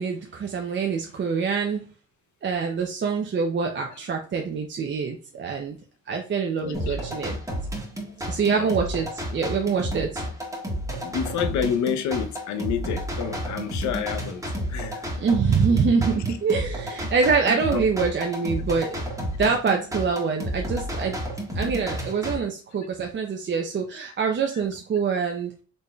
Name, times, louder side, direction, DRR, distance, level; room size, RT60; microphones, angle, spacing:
voice 1, 0.0-1.9 2.4-5.8 6.1-7.4 8.3-10.1 15.2-21.2 21.5-25.5, right 5 dB, 40° right, 0.6 m, -25 dB
voice 2, 6.6-7.0 8.5-8.8 11.0-14.4 14.7-15.1 16.1-16.2 17.5-17.9, left 7 dB, 70° left, 0.7 m, -29 dB
sound 1, 6.7-22.4, equal, 10° right, 1.6 m, -31 dB
4.0 x 3.4 x 2.2 m
cardioid pair, 90°, 30 cm